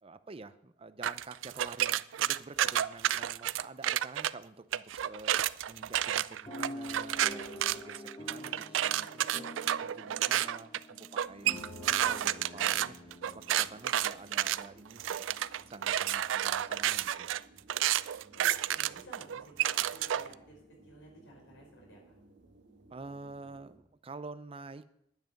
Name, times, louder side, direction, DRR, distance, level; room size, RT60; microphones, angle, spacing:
voice 1, 0.0-11.5 11.9-15.3 15.7-17.3 22.9-24.9, right 3 dB, 30° right, 12 dB, 0.6 m, -48 dB
sound 1, 1.0-4.3 4.7-20.3, right 11 dB, 90° right, 0.4 m, -31 dB
sound 2, 6.5-14.6 15.2-15.3 15.5-15.8, left 1 dB, 25° left, 1.7 m, -46 dB
sound 3, 11.2-23.8, right 2 dB, 70° right, 2.3 m, -60 dB
voice 2, 18.4-22.2, right 1 dB, 80° left, -1 dB, 5.5 m, -54 dB
10.5 x 9.3 x 5.2 m, 0.75 s
head